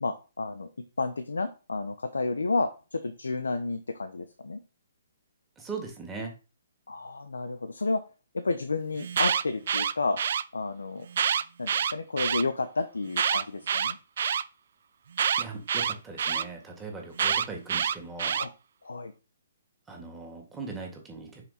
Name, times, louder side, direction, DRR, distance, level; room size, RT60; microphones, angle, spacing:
voice 1, 0.0-4.6 6.9-8.0 8.3-10.2 10.5-11.1 11.6-14.0 18.4-18.5 18.8-19.1, left 3 dB, 75° left, 8 dB, 0.7 m, -31 dB
voice 2, 5.6-6.3 15.4-18.4 19.9-21.4, right 4 dB, 10° right, 0 dB, 1.9 m, -39 dB
Alarm, 9.0-10.4 11.1-12.4 13.1-14.4 15.2-16.4 17.2-18.5, right 7 dB, 55° right, 0.4 m, -26 dB
5.9 x 4.5 x 4.1 m, 0.32 s
figure-of-eight pair, 130°, 0 cm